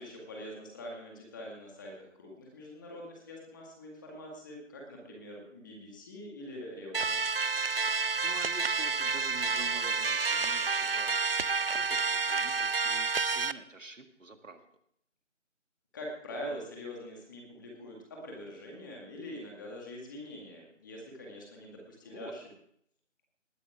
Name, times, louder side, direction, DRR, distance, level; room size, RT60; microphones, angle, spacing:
voice 1, 0.0-7.2 15.9-22.4, equal, 15° left, -1 dB, 2.0 m, -44 dB
sound 1, 6.9-13.5, right 4 dB, 50° right, 0.5 m, -29 dB
voice 2, 7.7-11.5 11.8-14.7 22.0-22.3, right 2 dB, 85° right, 7 dB, 1.9 m, -48 dB
20.0 x 9.5 x 3.6 m, 0.68 s
figure-of-eight pair, 165°, 38 cm